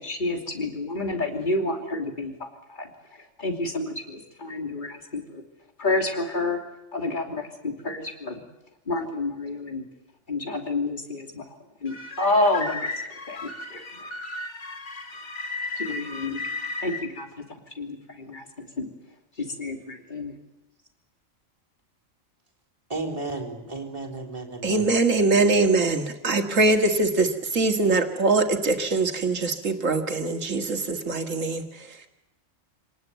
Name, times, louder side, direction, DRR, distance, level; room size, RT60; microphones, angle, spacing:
voice 1, 0.0-2.9 3.4-5.4 5.8-6.6 6.9-8.4 8.9-9.8 10.3-11.4 11.8-12.9 13.3-14.1 15.8-16.4 16.8-18.9 19.4-20.3, left 2 dB, 35° left, 4 dB, 3.0 m, -29 dB
sound 1, 11.9-17.0, left 3 dB, 65° left, 2.5 m, -35 dB
voice 2, 22.9-24.9, right 3 dB, 25° right, -2 dB, 4.0 m, -33 dB
voice 3, 24.6-31.6, right 3 dB, 75° right, 6 dB, 2.3 m, -22 dB
26.0 x 19.0 x 9.4 m, 0.94 s
omnidirectional pair, 1.3 m